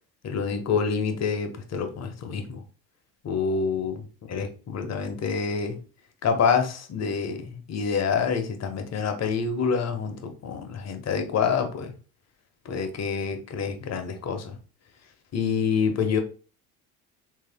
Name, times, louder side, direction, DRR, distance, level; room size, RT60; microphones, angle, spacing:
voice 1, 0.2-2.6 3.2-5.8 6.2-11.9 12.6-14.6 15.3-16.2, left 6 dB, 40° left, 0.9 m, -27 dB
3.2 x 2.7 x 3.4 m
hypercardioid pair, 80°, 41 cm